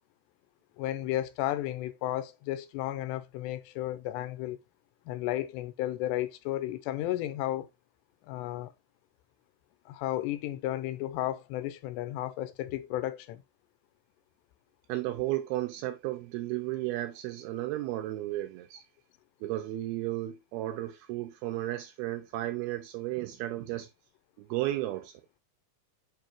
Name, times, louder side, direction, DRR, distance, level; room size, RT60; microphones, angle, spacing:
voice 1, 0.8-4.6 5.1-7.7 8.3-8.7 9.9-13.4, left 14 dB, 85° left, 2.8 m, -33 dB
voice 2, 14.9-18.8 19.4-23.9 24.4-25.2, right 15 dB, 80° right, 2.3 m, -34 dB
7.4 x 4.8 x 3.0 m
omnidirectional pair, 4.9 m